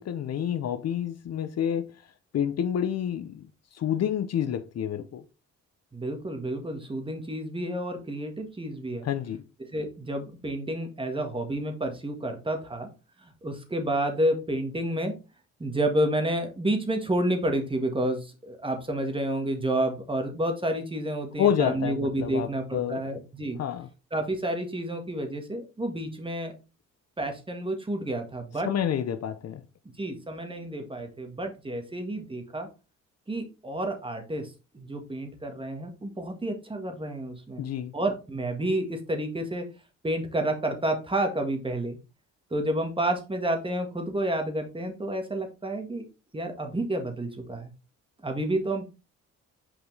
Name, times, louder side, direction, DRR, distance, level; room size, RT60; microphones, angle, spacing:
voice 1, 0.0-1.9 2.3-3.5 3.7-5.2 9.0-9.4 21.4-23.0 23.6-23.9 28.6-29.6 37.6-37.9, left 9 dB, 55° left, 0.7 m, -28 dB
voice 2, 5.9-9.0 9.7-12.9 13.2-15.1 15.6-23.6 24.1-26.5 27.2-28.7 30.0-32.7 33.3-37.6 37.9-39.7 40.0-42.0 42.5-46.1 46.3-47.7 48.2-48.9, right 1 dB, 15° right, 1.6 m, -30 dB
5.9 x 5.0 x 3.3 m
cardioid pair, 90°, 30 cm